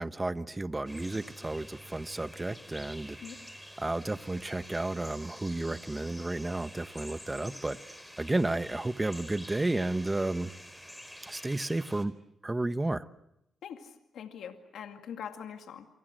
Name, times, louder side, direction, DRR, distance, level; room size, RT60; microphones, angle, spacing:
voice 1, 0.0-3.2 3.8-7.8 8.2-10.5 11.3-12.1 12.4-13.1, right 2 dB, 20° right, 1.0 m, -32 dB
sound 1, 0.9-12.1, equal, ahead, 4.1 m, -48 dB
voice 2, 13.6-15.9, left 8 dB, 80° left, 2.2 m, -43 dB
28.0 x 25.0 x 7.7 m
cardioid pair, 85°, 0 cm